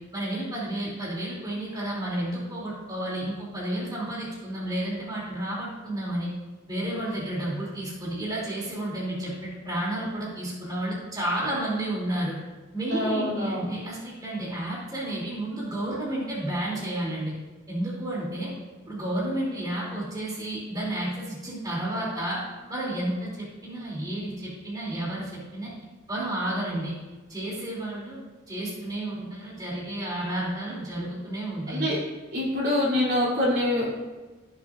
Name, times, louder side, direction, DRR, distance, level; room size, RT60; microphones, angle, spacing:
voice 1, 0.1-6.3 6.7-12.3 12.7-17.3 17.7-18.5 18.9-22.4 22.7-25.7 26.1-26.9 27.3-28.2 28.5-31.9, right 1 dB, 20° right, -6 dB, 3.0 m, -31 dB
voice 2, 12.9-13.7 31.7-32.0 32.3-33.9, left 1 dB, 50° right, -6 dB, 3.1 m, -25 dB
17.0 x 7.3 x 2.6 m, 1.2 s
head